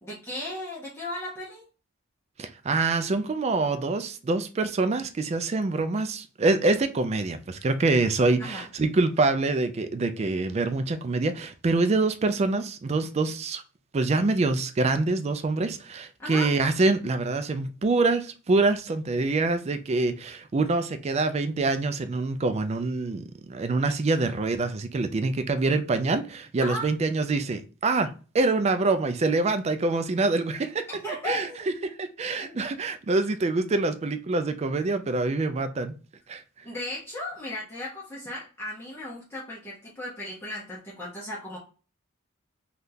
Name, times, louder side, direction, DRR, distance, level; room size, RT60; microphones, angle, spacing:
voice 1, 0.0-1.7 8.4-8.6 16.2-16.5 26.6-26.9 30.9-31.8 32.4-32.6 36.6-41.6, left 1 dB, 10° left, 0.8 m, -36 dB
voice 2, 2.4-13.6 13.9-28.1 28.3-30.8 31.2-31.5 31.8-35.9 36.3-36.4, right 3 dB, 30° right, 0.3 m, -25 dB
3.5 x 2.4 x 2.6 m
head